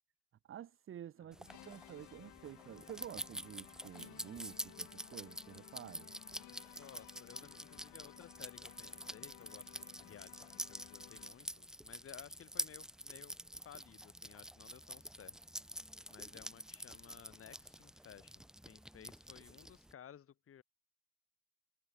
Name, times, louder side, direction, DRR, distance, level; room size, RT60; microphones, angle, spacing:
voice 1, 0.4-6.1, right 10 dB, 45° right, 1.1 m, -50 dB
voice 2, 1.2-1.6 6.8-13.4 13.6-15.4 16.1-20.6, left 9 dB, 50° left, 2.9 m, -57 dB
sound 1, 1.3-19.9, equal, ahead, 1.1 m, -48 dB
sound 2, 1.4-11.6, left 17 dB, 70° left, 2.0 m, -58 dB
supercardioid pair, 80°, 29 cm